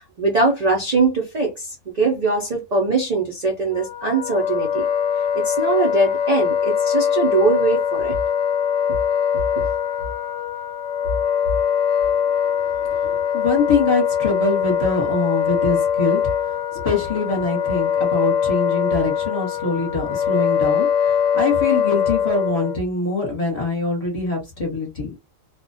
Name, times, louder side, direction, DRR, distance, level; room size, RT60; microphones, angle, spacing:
voice 1, 0.0-4.9 5.3-8.2, right 3 dB, 65° right, 0.4 m, -21 dB
Wind instrument woodwind instrument, 3.7-22.8, left 8 dB, 70° left, 0.9 m, -22 dB
voice 2, 12.8-16.2 16.7-20.9 21.3-25.1, left 3 dB, 30° left, 0.9 m, -23 dB
2.3 x 2.1 x 2.6 m
omnidirectional pair, 1.4 m